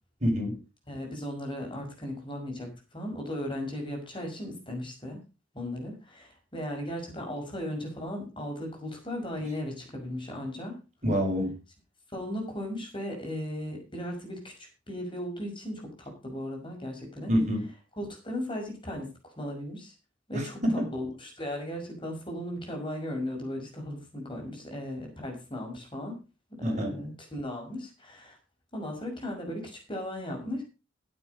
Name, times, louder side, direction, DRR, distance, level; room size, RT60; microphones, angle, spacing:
voice 1, 0.2-0.6 11.0-11.5 17.3-17.6 20.3-20.9 26.6-27.0, equal, 40° right, 2 dB, 5.7 m, -27 dB
voice 2, 0.9-5.2 5.5-10.8 12.1-14.5 14.9-17.3 18.0-19.9 20.3-26.2 26.5-28.4 28.7-30.6, left 1 dB, 25° left, 1 dB, 5.8 m, -36 dB
16.0 x 7.7 x 5.3 m, 0.31 s
head